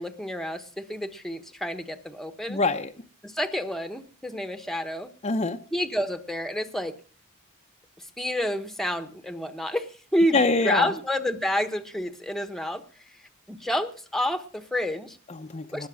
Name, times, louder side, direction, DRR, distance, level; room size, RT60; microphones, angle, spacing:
voice 1, 0.0-2.6 3.2-5.1 5.7-6.9 8.0-10.4 10.6-12.8 13.5-15.2 15.7-15.9, equal, ahead, 9 dB, 1.0 m, -29 dB
voice 2, 2.5-2.9 5.2-5.6 10.3-10.9 15.3-15.9, left 3 dB, 30° left, 5 dB, 0.7 m, -25 dB
20.0 x 6.6 x 6.2 m, 0.40 s
head